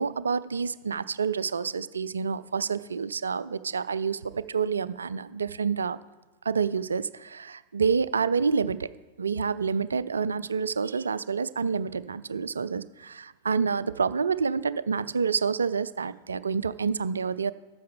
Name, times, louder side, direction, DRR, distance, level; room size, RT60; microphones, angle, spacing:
voice 1, 0.0-6.0 6.5-8.9 9.2-17.5, right 5 dB, 70° right, 17 dB, 0.3 m, -28 dB
13.0 x 7.6 x 3.6 m, 1.2 s
figure-of-eight pair, 90°, 0 cm